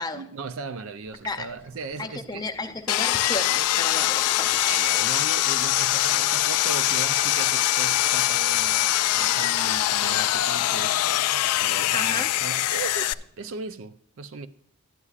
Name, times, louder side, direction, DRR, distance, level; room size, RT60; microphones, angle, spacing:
voice 1, 0.0-2.5 4.5-11.0 11.6-14.5, right 4 dB, 60° right, 0.5 m, -37 dB
sound 1, 1.1-13.8, equal, 25° right, 1.1 m, -53 dB
voice 2, 2.0-4.8 11.9-12.3, left 3 dB, 15° left, 0.6 m, -33 dB
Sawing, 2.9-13.1, left 14 dB, 85° left, 0.3 m, -23 dB
12.5 x 9.7 x 2.4 m
head